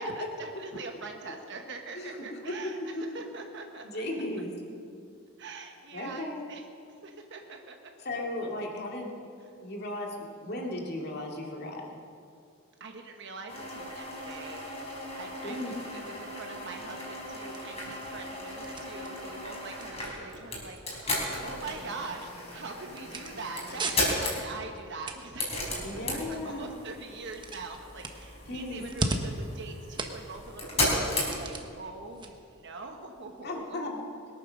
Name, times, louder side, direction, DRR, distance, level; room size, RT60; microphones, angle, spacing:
voice 1, 0.0-4.0 5.4-6.7 7.0-7.8 12.8-14.6 15.2-33.8, right 3 dB, 55° right, 3 dB, 1.1 m, -43 dB
voice 2, 1.9-2.5 3.1-3.2 3.8-4.5 5.9-6.4 8.0-9.1 9.6-11.8 15.4-15.7 25.8-26.7 28.5-28.8 33.4-34.0, left 1 dB, 45° left, 0 dB, 2.3 m, -36 dB
sound 1, 13.5-31.9, left 1 dB, 30° left, 3.6 m, -35 dB
sound 2, 16.7-33.6, right 2 dB, 20° right, 0.9 m, -41 dB
21.5 x 9.2 x 6.4 m, 2.4 s
head